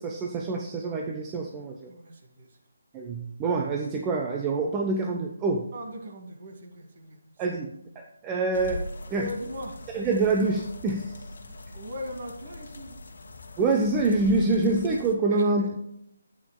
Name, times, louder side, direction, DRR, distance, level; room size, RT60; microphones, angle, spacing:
voice 1, 0.0-1.9 2.9-5.6 7.4-8.8 9.1-9.3 9.9-11.1 13.6-15.8, right 3 dB, 15° right, 1 dB, 0.7 m, -26 dB
voice 2, 1.9-2.6 5.7-7.6 9.2-9.8 11.5-13.0 15.3-15.7, left 1 dB, 45° right, 2 dB, 2.1 m, -40 dB
sound 1, 8.5-15.1, left 1 dB, 60° left, 1.3 m, -41 dB
11.5 x 8.6 x 2.2 m, 0.78 s
figure-of-eight pair, 145°, 0 cm